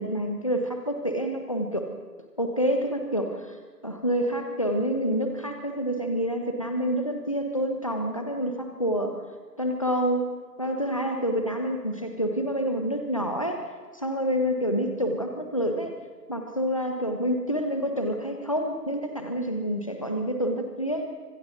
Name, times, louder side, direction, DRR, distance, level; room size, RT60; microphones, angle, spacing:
voice 1, 0.0-1.9 2.4-3.5 3.8-9.2 9.6-16.0 16.3-21.1, equal, 20° left, 4 dB, 1.3 m, -28 dB
26.0 x 25.5 x 4.0 m, 1.5 s
figure-of-eight pair, 175°, 48 cm